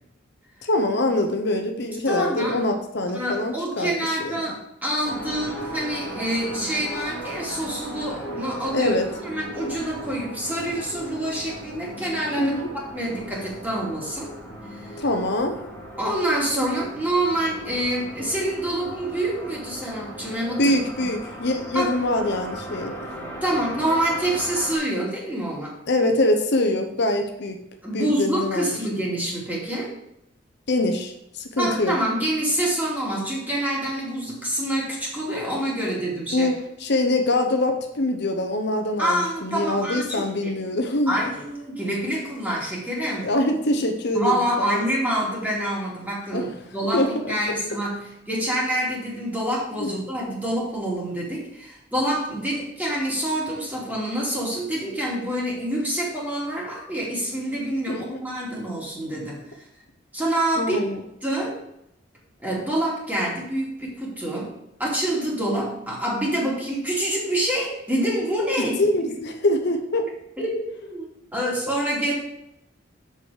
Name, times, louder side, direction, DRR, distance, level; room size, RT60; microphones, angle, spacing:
voice 1, 0.6-4.3 8.7-9.1 12.4-12.6 15.0-15.6 20.6-22.9 25.9-27.6 27.9-28.7 30.7-32.0 36.3-41.1 43.1-44.8 46.3-46.5 46.9-47.3 49.8-49.9 57.9-58.2 60.6-61.0 68.8-70.1, left 1 dB, 60° left, 5 dB, 0.8 m, -24 dB
voice 2, 2.0-2.6 3.1-9.0 9.2-12.5 12.9-14.4 14.7-15.0 16.0-20.8 21.7-21.9 23.4-25.7 27.8-29.9 31.6-36.5 39.0-40.5 41.1-43.3 44.1-59.7 60.1-60.9 61.2-61.6 62.4-64.5 64.8-68.8 70.4-72.1, right 1 dB, 10° right, -4 dB, 2.5 m, -26 dB
sound 1, 5.0-24.8, right 1 dB, 10° left, 2.1 m, -37 dB
6.6 x 6.3 x 4.9 m, 0.81 s
head